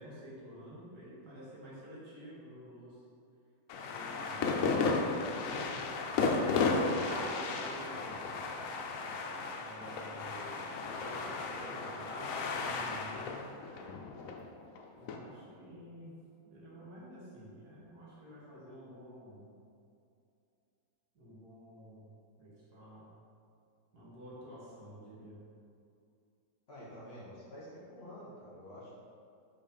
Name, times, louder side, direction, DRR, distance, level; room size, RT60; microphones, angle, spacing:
voice 1, 0.0-3.0 3.9-8.2 9.6-13.4 15.0-16.2 16.4-19.5 21.2-22.1 22.4-23.1 23.9-25.4, equal, 60° right, -7 dB, 2.0 m, -50 dB
sound 1, 3.7-15.2, left 4 dB, 70° left, 0.8 m, -34 dB
sound 2, 6.2-14.7 15.0-15.1, equal, ahead, 0.4 m, -48 dB
voice 2, 26.7-29.0, equal, 40° left, -8 dB, 1.4 m, -49 dB
5.0 x 4.1 x 5.4 m, 2.5 s
omnidirectional pair, 1.9 m